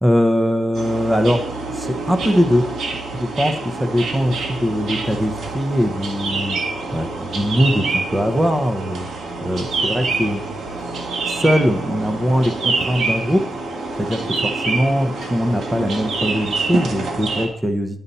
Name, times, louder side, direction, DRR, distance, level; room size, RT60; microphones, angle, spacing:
voice 1, 0.0-1.4 1.7-2.7 3.1-6.6 6.9-9.1 9.4-10.4 11.3-13.4 14.0-18.0, equal, 10° right, 7 dB, 0.9 m, -21 dB
sound 1, 0.7-17.5, right 3 dB, 65° right, 1.8 m, -26 dB
10.5 x 5.5 x 4.2 m, 0.73 s
cardioid pair, 95°, 0 cm